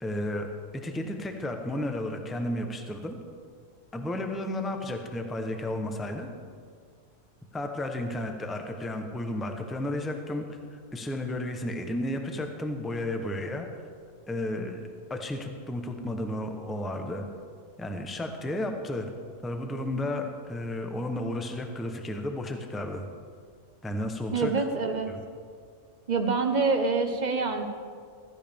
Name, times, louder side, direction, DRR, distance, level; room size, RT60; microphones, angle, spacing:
voice 1, 0.0-0.5 0.8-3.2 3.9-6.3 7.5-13.7 14.3-14.8 15.1-17.3 17.8-19.1 19.4-23.1 23.8-24.5 25.1-25.2, left 1 dB, ahead, 4 dB, 0.7 m, -33 dB
voice 2, 24.3-25.1 26.1-27.6, right 4 dB, 35° right, 6 dB, 1.0 m, -26 dB
15.5 x 14.0 x 3.6 m, 2.1 s
omnidirectional pair, 1.4 m